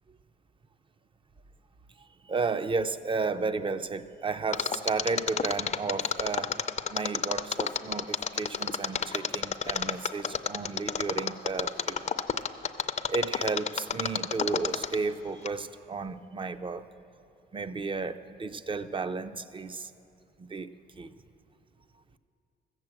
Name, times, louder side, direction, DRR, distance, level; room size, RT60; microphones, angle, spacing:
voice 1, 2.3-6.5 6.9-12.1 13.1-16.8 17.5-19.9 20.4-20.7 21.0-21.1, right 4 dB, 25° right, 12 dB, 0.5 m, -33 dB
Mechanisms, 4.5-15.1 15.4-15.5, left 7 dB, 35° left, 0.5 m, -29 dB
14.5 x 7.6 x 7.6 m, 2.7 s
cardioid pair, 90°, 20 cm